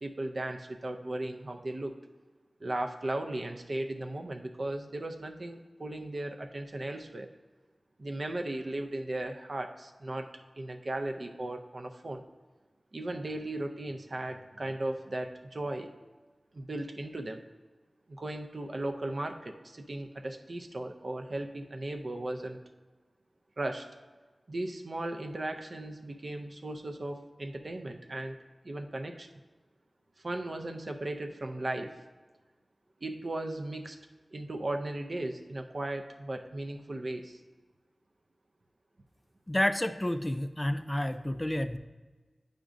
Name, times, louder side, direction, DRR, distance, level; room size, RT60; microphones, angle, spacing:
voice 1, 0.0-1.9 2.6-7.3 8.0-10.3 10.6-12.2 12.9-15.9 16.5-17.4 18.1-22.6 23.6-23.9 24.5-28.4 28.6-29.3 30.2-32.0 33.0-34.0 34.3-37.4, right 1 dB, 60° right, 5 dB, 0.5 m, -36 dB
voice 2, 39.5-41.8, left 1 dB, 20° left, 10 dB, 0.3 m, -30 dB
9.1 x 5.0 x 2.5 m, 1.3 s
wide cardioid pair, 55°, 0 cm